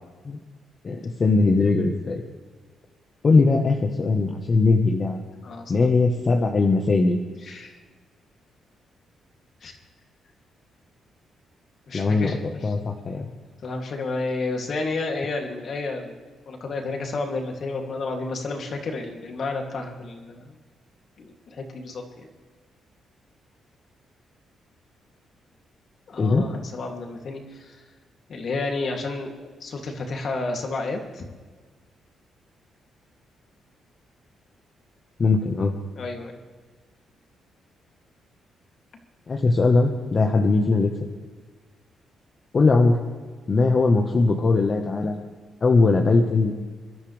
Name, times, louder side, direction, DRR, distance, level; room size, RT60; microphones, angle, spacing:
voice 1, 0.8-2.2 3.2-5.2 5.7-7.2 11.9-13.3 26.2-26.5 35.2-35.7 39.3-40.9 42.5-43.0 43.5-45.2 45.6-46.5, left 3 dB, 35° left, 2 dB, 1.3 m, -20 dB
voice 2, 7.4-7.8 9.6-9.8 11.9-12.6 13.6-16.2 16.5-20.6 21.2-22.3 26.1-27.8 28.3-31.3 36.0-36.4, left 3 dB, 50° left, 2 dB, 2.8 m, -31 dB
25.5 x 12.5 x 3.5 m, 1.5 s
cardioid pair, 130°, 0 cm